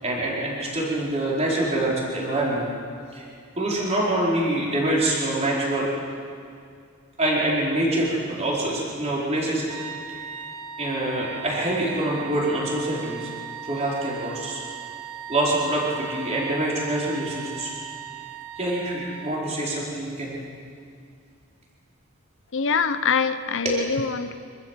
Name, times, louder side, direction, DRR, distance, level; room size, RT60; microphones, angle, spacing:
voice 1, 0.0-2.7 3.1-3.3 3.6-5.9 7.2-9.7 10.1-10.2 10.8-13.3 13.6-14.6 15.3-17.7 18.6-20.3, right 1 dB, 30° right, -5 dB, 4.6 m, -25 dB
sound 1, 9.7-19.6, right 8 dB, 85° right, 2.2 m, -38 dB
voice 2, 22.5-24.3, left 5 dB, 60° left, 11 dB, 0.9 m, -24 dB
25.5 x 14.5 x 7.6 m, 2.3 s
head